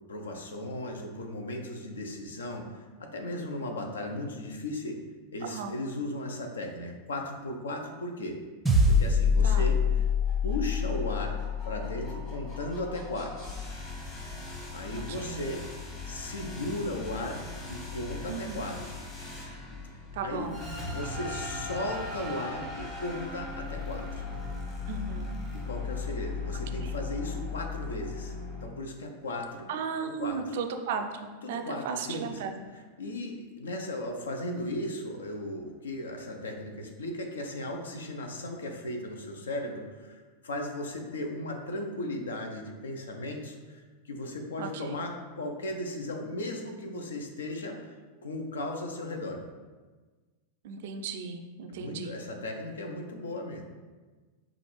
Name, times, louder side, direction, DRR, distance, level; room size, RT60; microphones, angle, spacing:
voice 1, 0.1-5.0 5.3-8.4 8.9-9.8 10.4-11.4 11.7-13.5 14.7-15.6 16.1-17.4 17.7-18.9 20.2-20.5 20.8-24.2 25.5-29.7 30.0-30.4 31.4-32.4 33.0-47.8 48.2-49.4 51.7-53.6, left 1 dB, 70° left, 3 dB, 0.6 m, -36 dB
voice 2, 5.4-5.8 9.4-9.7 15.1-15.5 18.3-18.7 20.1-20.7 24.9-25.4 26.8-26.9 29.7-32.6 44.6-45.0 50.6-52.2, right 6 dB, 55° right, 6 dB, 0.4 m, -36 dB
sound 1, 8.7-13.2, left 4 dB, 5° right, 0.6 m, -26 dB
sound 2, 9.8-28.7, left 3 dB, 30° left, 1.1 m, -39 dB
5.8 x 2.5 x 3.1 m, 1.4 s
figure-of-eight pair, 90°, 0 cm